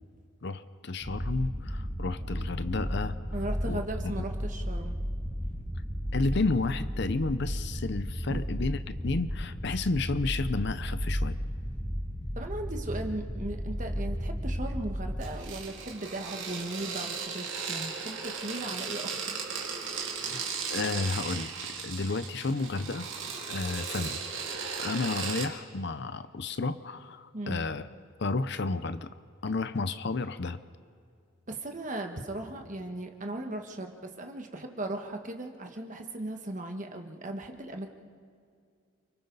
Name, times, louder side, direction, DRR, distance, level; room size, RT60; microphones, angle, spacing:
voice 1, 0.4-3.2 3.6-4.1 6.1-8.8 9.0-11.4 20.2-21.5 21.8-23.1 23.5-24.2 24.8-27.9 28.2-29.1 29.4-30.6, left 3 dB, 55° left, 12 dB, 0.6 m, -31 dB
sound 1, 1.0-15.3, equal, 5° left, 3.5 m, -34 dB
voice 2, 3.3-5.0 8.3-8.4 12.3-19.4 27.3-27.6 31.5-37.9, right 1 dB, 35° right, 4 dB, 1.5 m, -37 dB
sound 2, 15.2-25.5, right 5 dB, 60° right, 2.6 m, -36 dB
29.5 x 23.5 x 4.1 m, 2.3 s
head